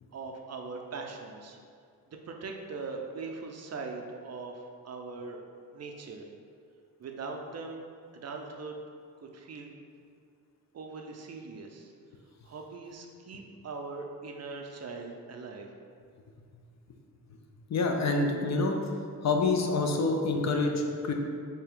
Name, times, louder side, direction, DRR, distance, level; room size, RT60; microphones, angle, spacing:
voice 1, 0.1-1.6 2.3-5.4 5.7-6.3 7.0-8.8 9.2-9.8 10.7-11.9 12.4-15.7, right 4 dB, 45° right, 2 dB, 0.4 m, -41 dB
voice 2, 17.7-18.7 19.2-21.1, left 3 dB, 50° left, 3 dB, 0.4 m, -27 dB
3.3 x 2.7 x 3.5 m, 2.3 s
cardioid pair, 85°, 36 cm